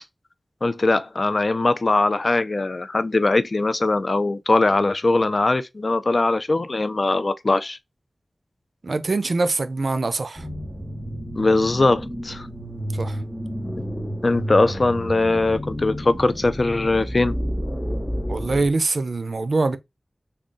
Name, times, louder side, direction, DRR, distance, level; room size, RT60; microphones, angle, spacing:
voice 1, 0.6-7.8 11.4-12.5 14.2-17.4, left 2 dB, 60° left, 0.4 m, -21 dB
voice 2, 8.8-10.5 12.9-13.2 18.3-19.8, right 3 dB, 80° right, 0.4 m, -23 dB
sound 1, 10.4-18.7, equal, ahead, 1.0 m, -30 dB
3.6 x 2.3 x 3.8 m
wide cardioid pair, 60°, 0 cm